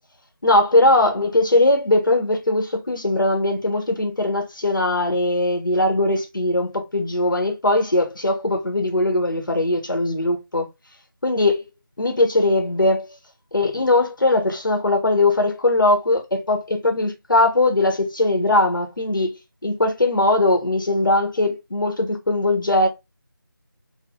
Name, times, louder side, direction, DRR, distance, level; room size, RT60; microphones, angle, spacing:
voice 1, 0.4-10.7 11.2-11.6 12.0-13.1 13.5-22.9, left 2 dB, 65° left, 1.4 m, -20 dB
5.9 x 2.3 x 2.5 m
figure-of-eight pair, 175°, 12 cm